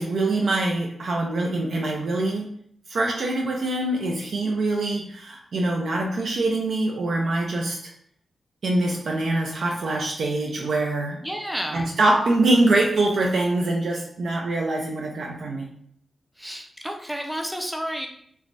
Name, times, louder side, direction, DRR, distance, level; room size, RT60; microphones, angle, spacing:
voice 1, 0.0-2.5 2.9-7.8 8.6-11.2 11.7-15.7, right 2 dB, 75° right, -1 dB, 0.4 m, -24 dB
voice 2, 11.2-11.9 16.4-18.1, equal, ahead, 2 dB, 0.4 m, -31 dB
3.2 x 2.1 x 2.5 m, 0.66 s
wide cardioid pair, 105°, 0 cm